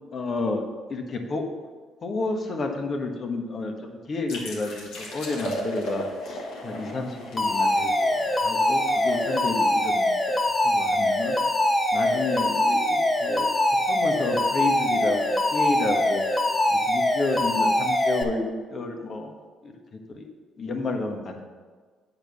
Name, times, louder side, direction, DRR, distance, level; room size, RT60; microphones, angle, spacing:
voice 1, 0.1-0.6 0.9-1.4 2.0-8.1 8.4-10.1 10.6-11.4 11.9-13.5 13.9-19.3 19.6-19.7 20.1-20.3 20.6-21.4, left 3 dB, 50° left, 3 dB, 1.5 m, -31 dB
sound 1, 4.3-9.8, equal, 80° left, 2.2 m, -36 dB
Alarm, 7.4-18.2, left 1 dB, 25° left, 1.2 m, -23 dB
8.9 x 4.5 x 6.9 m, 1.5 s
supercardioid pair, 75°, 0 cm